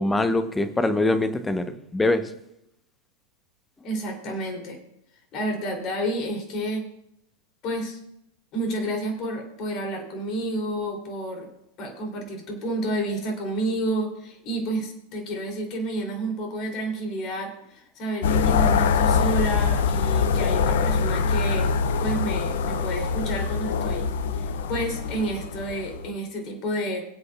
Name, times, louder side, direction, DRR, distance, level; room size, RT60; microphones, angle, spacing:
voice 1, 0.0-2.3, left 2 dB, 10° left, 11 dB, 0.9 m, -23 dB
voice 2, 3.8-4.8 5.3-6.8 7.6-8.0 8.5-11.5 11.8-27.0, right 1 dB, 35° left, 2 dB, 3.2 m, -30 dB
sound 1, 18.2-26.1, left 5 dB, 55° left, 0.7 m, -24 dB
23.5 x 8.0 x 2.4 m, 0.78 s
figure-of-eight pair, 90°, 0 cm